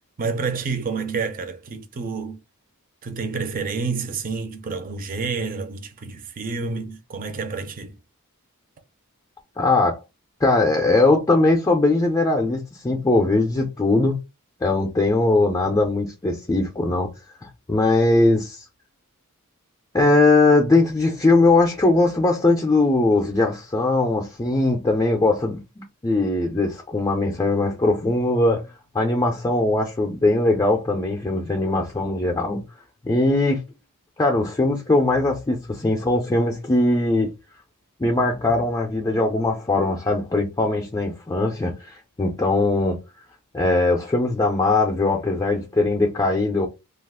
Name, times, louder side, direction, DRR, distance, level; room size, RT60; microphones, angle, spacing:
voice 1, 0.2-2.4 3.0-8.0, right 4 dB, 40° right, 0.5 m, -29 dB
voice 2, 9.6-10.0 10.4-14.2 14.6-17.1 17.4-18.7 19.9-28.6 28.9-32.6 33.0-33.6 34.2-37.3 38.0-43.0 43.5-46.7, left 2 dB, 15° left, 0.4 m, -20 dB
2.4 x 2.4 x 3.5 m
head